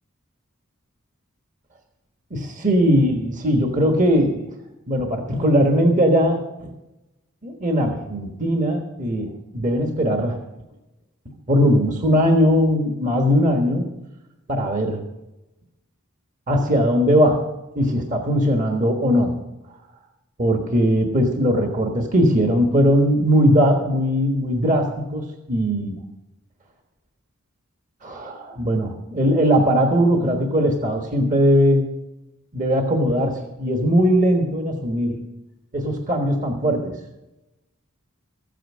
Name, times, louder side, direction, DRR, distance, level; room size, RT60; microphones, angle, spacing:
voice 1, 2.3-4.5 4.9-6.7 7.4-10.4 11.5-13.9 14.5-15.0 16.5-17.4 17.7-19.4 20.4-26.0 28.0-31.9 32.5-35.2 35.7-37.0, equal, 35° right, 4 dB, 1.3 m, -19 dB
14.0 x 9.1 x 6.2 m, 0.98 s
head